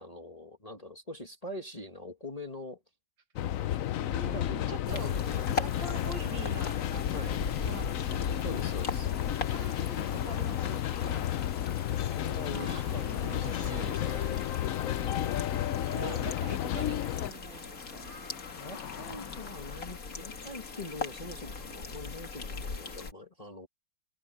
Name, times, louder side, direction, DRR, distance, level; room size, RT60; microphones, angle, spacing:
voice 1, 0.0-2.8 3.3-3.9 4.2-5.9 7.1-7.4 8.4-9.1 10.9-11.3 12.0-14.4 15.9-16.2 18.6-23.7, left 1 dB, 20° left, 1.5 m, -44 dB
sound 1, 3.4-17.3, left 12 dB, 90° left, 0.7 m, -32 dB
voice 2, 4.0-5.1 5.5-7.4 7.6-8.3 9.5-10.8 12.5-14.4 15.8-18.1, right 6 dB, 65° right, 2.2 m, -45 dB
sound 2, 4.9-23.1, left 4 dB, 45° left, 2.3 m, -40 dB
sound 3, 7.4-20.0, left 8 dB, 70° left, 2.0 m, -50 dB
omnidirectional pair, 2.2 m